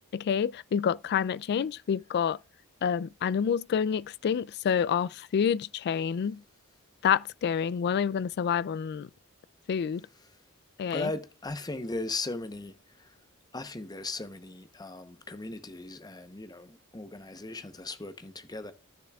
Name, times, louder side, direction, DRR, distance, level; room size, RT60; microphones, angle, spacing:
voice 1, 0.1-2.4 2.8-6.4 7.0-9.1 9.7-10.1 10.8-11.1, left 7 dB, 50° left, 0.3 m, -28 dB
voice 2, 10.9-13.1 13.5-18.7, left 2 dB, 20° left, 0.8 m, -38 dB
12.5 x 6.8 x 2.3 m
head